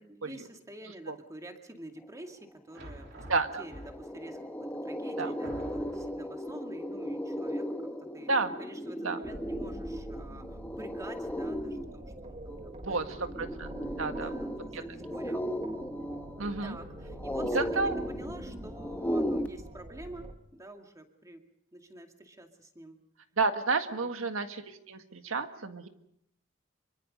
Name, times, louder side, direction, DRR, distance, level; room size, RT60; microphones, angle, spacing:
voice 1, 0.0-8.3 8.6-13.6 14.1-15.4 16.6-21.4 21.7-23.0 24.0-24.3, right 1 dB, 15° right, 4 dB, 2.3 m, -48 dB
sound 1, 2.7-4.3 4.9-5.0 5.4-6.3, right 1 dB, 60° right, 3.3 m, -46 dB
sound 2, 2.9-3.0 3.3-19.5, equal, 10° left, 1.2 m, -36 dB
voice 2, 3.3-3.6 5.2-5.3 8.3-8.5 9.0-9.2 12.8-13.1 13.4-13.7 14.0-14.3 14.7-14.8 16.4-16.8 17.5-17.9 23.4-25.9, right 3 dB, 85° right, 7 dB, 1.8 m, -30 dB
sound 3, 9.2-20.3, right 1 dB, 30° right, 1.5 m, -45 dB
26.0 x 24.0 x 5.4 m, 0.75 s
head